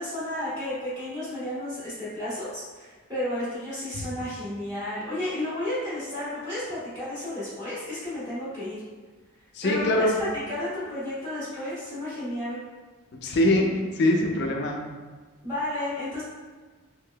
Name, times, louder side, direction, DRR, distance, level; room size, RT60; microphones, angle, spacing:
voice 1, 0.0-8.8 9.6-12.6 15.4-16.2, left 1 dB, 15° right, -14 dB, 1.3 m, -32 dB
voice 2, 9.5-10.2 13.2-14.8, left 1 dB, 50° left, 1 dB, 0.4 m, -23 dB
3.2 x 3.0 x 2.2 m, 1.4 s
head